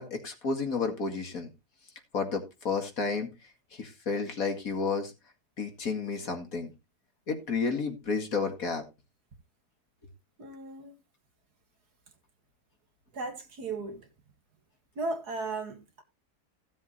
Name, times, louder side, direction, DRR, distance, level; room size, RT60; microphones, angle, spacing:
voice 1, 0.0-1.5 2.1-3.3 3.7-5.1 5.6-6.7 7.3-8.8, left 4 dB, 60° left, 2.4 m, -31 dB
voice 2, 10.4-11.0 13.1-14.0 15.0-16.0, right 3 dB, 80° right, 2.5 m, -36 dB
16.0 x 7.1 x 3.2 m
omnidirectional pair, 1.7 m